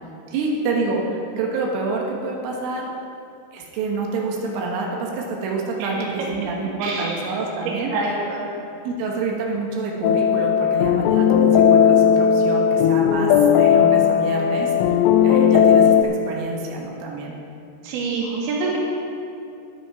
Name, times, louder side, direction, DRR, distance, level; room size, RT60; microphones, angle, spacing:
voice 1, 0.3-2.9 3.5-7.9 8.9-14.7 15.2-15.9 16.3-17.3, right 3 dB, 90° right, -1 dB, 3.8 m, -27 dB
voice 2, 6.2-6.5 6.8-7.3 7.6-8.5 17.8-18.8, right 3 dB, 60° right, -4 dB, 3.5 m, -27 dB
sound 1, 10.0-16.0, left 8 dB, 85° left, 3.1 m, -16 dB
11.5 x 10.0 x 4.8 m, 2.6 s
omnidirectional pair, 5.5 m